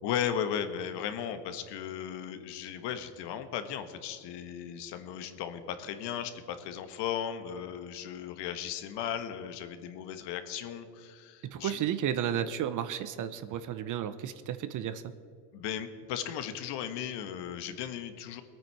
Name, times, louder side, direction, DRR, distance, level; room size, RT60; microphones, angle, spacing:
voice 1, 0.0-11.8 15.5-18.4, left 9 dB, 60° left, 9 dB, 1.4 m, -36 dB
voice 2, 11.5-15.1, right 10 dB, 40° right, 12 dB, 0.8 m, -33 dB
20.5 x 9.1 x 4.7 m, 2.3 s
supercardioid pair, 110°, 48 cm